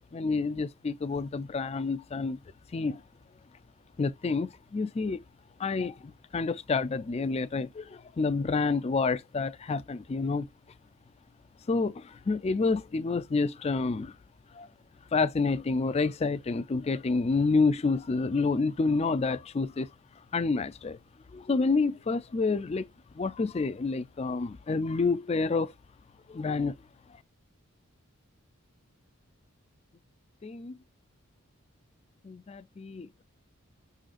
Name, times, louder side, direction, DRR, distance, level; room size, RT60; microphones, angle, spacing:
voice 1, 0.1-2.4 2.7-3.0 4.0-5.2 5.6-10.5 11.7-14.1 14.5-14.7 15.1-19.9 20.3-21.0 21.3-22.9 23.2-25.7 26.3-26.8 30.4-30.8 32.2-33.2, left 4 dB, 30° left, 0.3 m, -28 dB
5.6 x 3.8 x 2.4 m
head